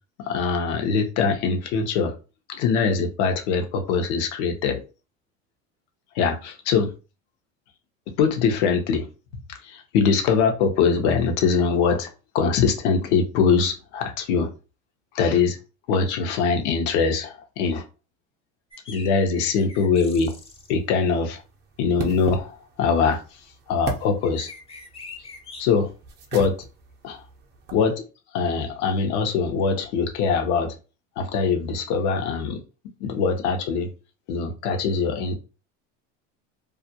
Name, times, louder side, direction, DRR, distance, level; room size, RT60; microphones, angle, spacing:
voice 1, 0.2-2.1 2.5-4.8 6.1-6.9 8.2-9.1 9.5-12.1 12.3-14.5 15.1-15.6 15.9-17.8 18.9-20.3 20.7-21.4 21.8-23.4 23.7-24.5 25.6-25.9 26.3-26.7 27.0-27.2 27.7-28.0 28.3-30.7 31.2-32.6 33.0-33.9 34.3-35.4, left 5 dB, 70° left, 0.8 m, -22 dB
sound 1, 18.7-20.7 24.2-25.6 26.3-26.5, left 4 dB, 15° left, 0.5 m, -43 dB
sound 2, 20.2-27.9, right 3 dB, 30° right, 0.5 m, -38 dB
2.4 x 2.1 x 2.7 m
supercardioid pair, 105°, 35 cm